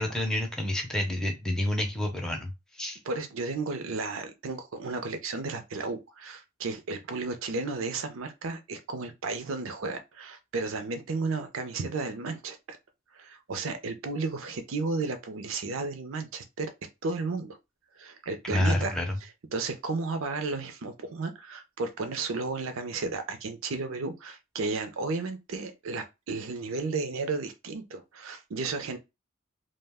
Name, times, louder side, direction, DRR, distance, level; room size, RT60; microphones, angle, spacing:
voice 1, 0.0-3.0 18.4-19.1, left 1 dB, 5° left, 0.5 m, -29 dB
voice 2, 3.0-12.8 13.1-16.7 17.0-17.6 18.0-19.0 19.5-29.0, right 3 dB, 65° right, 0.5 m, -33 dB
2.4 x 2.1 x 3.4 m
head